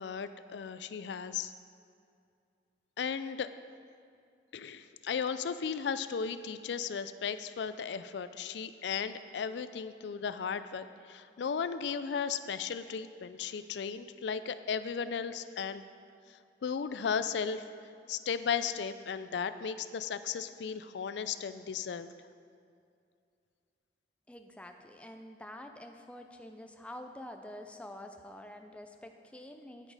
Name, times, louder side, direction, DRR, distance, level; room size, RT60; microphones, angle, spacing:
voice 1, 0.0-1.5 3.0-3.5 4.5-15.8 16.6-17.6 18.1-22.1, left 6 dB, 80° left, 12 dB, 0.4 m, -35 dB
voice 2, 24.3-29.9, left 1 dB, 5° left, 5 dB, 0.4 m, -47 dB
8.8 x 8.6 x 4.8 m, 2.3 s
head